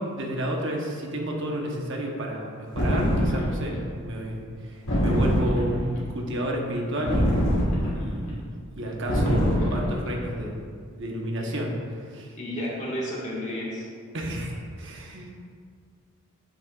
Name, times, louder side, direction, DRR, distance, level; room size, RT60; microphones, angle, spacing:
voice 1, 0.0-7.5 7.9-8.4 8.7-10.7 11.0-12.3 14.1-15.3, equal, 60° right, 0 dB, 1.0 m, -31 dB
sound 1, 2.8-3.6 4.9-5.8 7.1-8.1 9.1-9.9, equal, 65° left, 2.0 m, -23 dB
voice 2, 12.4-13.9, equal, 35° left, -5 dB, 1.7 m, -32 dB
9.0 x 8.2 x 2.4 m, 2.1 s
head